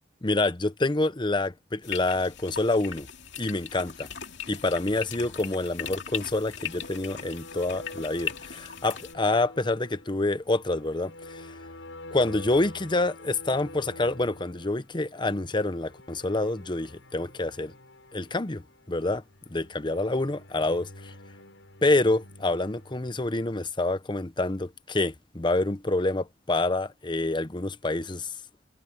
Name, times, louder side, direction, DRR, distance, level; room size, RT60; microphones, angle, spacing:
voice 1, 0.2-3.1 3.4-4.1 4.5-11.5 12.1-17.7 18.1-18.6 18.9-19.2 19.5-21.1 21.8-28.3, left 2 dB, 25° left, 0.9 m, -27 dB
sound 1, 1.8-9.1, left 7 dB, 70° left, 2.8 m, -39 dB
sound 2, 4.9-23.6, left 2 dB, 85° left, 7.7 m, -48 dB
head